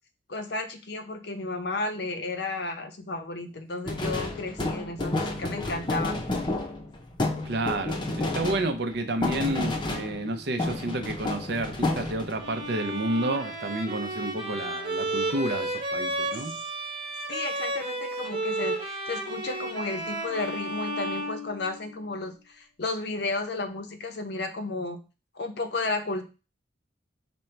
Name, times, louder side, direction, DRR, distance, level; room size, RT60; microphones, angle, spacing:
voice 1, 0.3-6.2 16.3-16.4 17.3-25.0 25.4-26.2, left 3 dB, 60° left, 0.7 m, -33 dB
sound 1, 3.9-10.3 10.6-12.5, left 2 dB, 25° left, 0.6 m, -30 dB
voice 2, 7.5-16.5, right 2 dB, 60° right, 0.6 m, -30 dB
Bowed string instrument, 12.4-22.1, right 1 dB, 30° right, 1.3 m, -32 dB
5.2 x 2.2 x 4.3 m
head